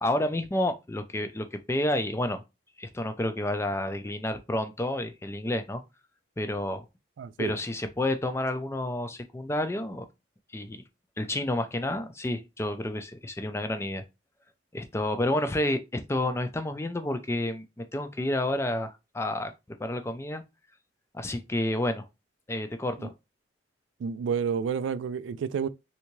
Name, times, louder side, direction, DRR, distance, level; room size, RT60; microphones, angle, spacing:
voice 1, 0.0-2.4 2.8-5.8 6.4-6.8 7.4-10.1 10.5-10.8 11.2-14.0 14.7-19.5 19.8-20.4 21.1-22.1 22.5-23.1, left 1 dB, 15° left, 0.4 m, -30 dB
voice 2, 7.2-7.5 23.0-23.1 24.0-25.7, right 6 dB, 85° right, 0.3 m, -30 dB
3.3 x 2.7 x 3.0 m
head